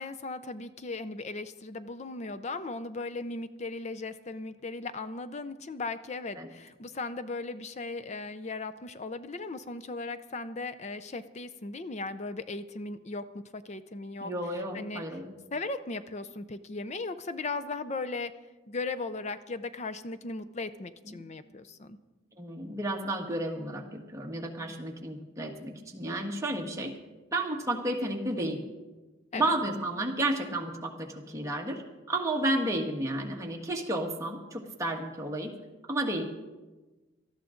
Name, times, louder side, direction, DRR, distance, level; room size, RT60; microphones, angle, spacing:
voice 1, 0.0-14.3 14.7-15.0 15.5-18.3 18.7-22.0 29.3-29.5, left 3 dB, 35° left, 12 dB, 0.5 m, -37 dB
voice 2, 14.2-15.3 21.0-21.2 22.4-26.9 27.3-28.7 29.3-31.8 32.1-35.6 35.9-36.2, right 1 dB, 15° right, 0 dB, 1.5 m, -32 dB
18.5 x 13.0 x 3.8 m, 1.2 s
head